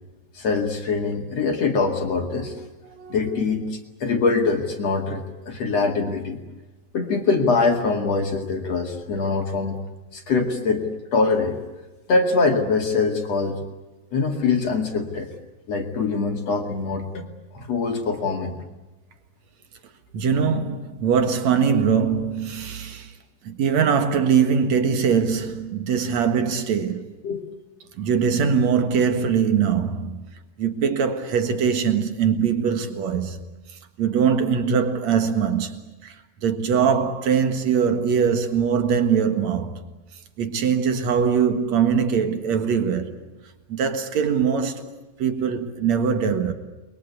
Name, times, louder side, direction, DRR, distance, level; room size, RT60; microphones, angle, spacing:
voice 1, 0.3-2.6 3.1-6.4 6.9-9.8 10.1-11.6 12.1-13.6 14.1-15.3 15.7-17.3 17.5-18.6 27.2-27.4, left 4 dB, 45° left, 2.5 m, -23 dB
voice 2, 2.3-3.4 20.1-23.2 23.4-27.1 28.0-30.2 30.6-33.4 33.7-39.8 40.4-43.1 43.7-44.9 45.2-46.5, right 7 dB, 60° right, 1.9 m, -22 dB
30.0 x 22.5 x 8.3 m
omnidirectional pair, 5.4 m